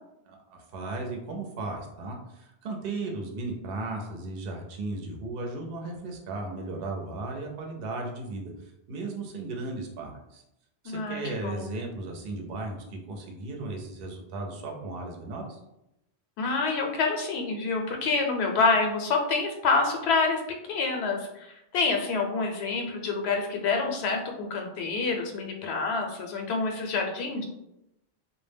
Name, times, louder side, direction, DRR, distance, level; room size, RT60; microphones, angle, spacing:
voice 1, 0.3-10.4 10.8-15.6, right 2 dB, 70° right, 1 dB, 0.7 m, -36 dB
voice 2, 10.8-11.7 16.4-20.4 20.7-27.5, left 4 dB, 80° left, 3 dB, 0.8 m, -27 dB
2.1 x 2.0 x 3.3 m, 0.86 s
omnidirectional pair, 1.1 m